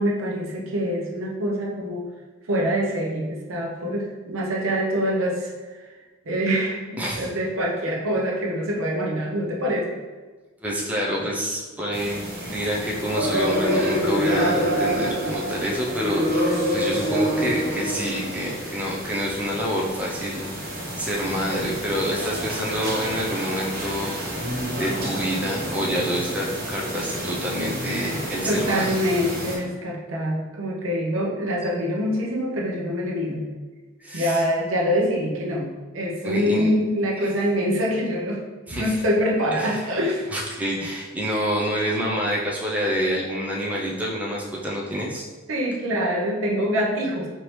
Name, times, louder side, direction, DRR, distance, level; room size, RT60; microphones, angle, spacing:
voice 1, 0.0-2.1 2.5-5.5 5.8-5.9 6.3-10.0 28.5-33.5 34.1-35.7 35.9-38.4 38.7-40.3 45.5-47.3, equal, 75° right, -1 dB, 0.7 m, -25 dB
voice 2, 10.6-20.5 21.0-24.2 24.7-28.9 34.0-34.4 36.2-36.7 38.7-39.0 39.6-39.9 40.3-45.3, equal, 5° right, -4 dB, 0.5 m, -27 dB
sound 1, 11.9-29.6, equal, 50° right, 1.1 m, -27 dB
4.4 x 2.8 x 3.2 m, 1.3 s
head